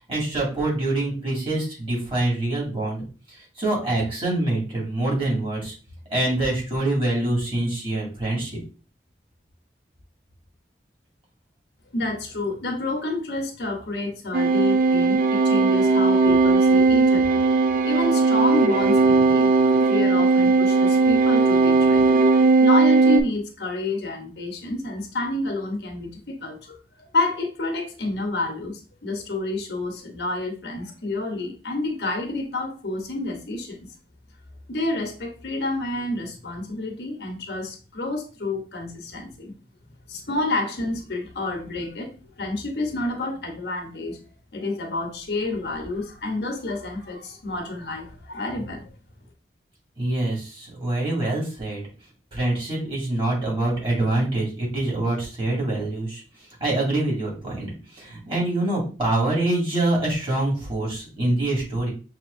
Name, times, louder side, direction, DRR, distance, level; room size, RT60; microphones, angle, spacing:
voice 1, 0.1-5.7 6.1-8.5 50.0-51.8 52.3-56.2 56.6-61.9, right 2 dB, 30° right, -4 dB, 2.0 m, -25 dB
voice 2, 11.9-17.4 17.8-22.3 22.6-33.9 34.7-39.5 40.1-44.2 44.5-48.9, left 2 dB, 70° left, 3 dB, 0.9 m, -29 dB
sound 1, 14.3-23.2, right 3 dB, 50° right, 0.4 m, -18 dB
5.9 x 2.8 x 2.5 m, 0.35 s
head